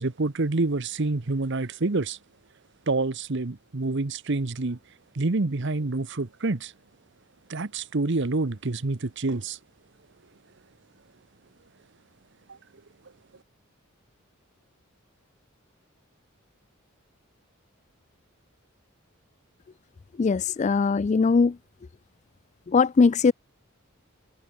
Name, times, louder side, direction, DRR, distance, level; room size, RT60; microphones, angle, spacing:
voice 1, 0.0-2.2 2.9-4.8 5.1-6.7 7.5-9.6, right 3 dB, 60° right, 1.0 m, -27 dB
voice 2, 20.2-21.6 22.7-23.3, left 4 dB, 35° left, 0.3 m, -20 dB
head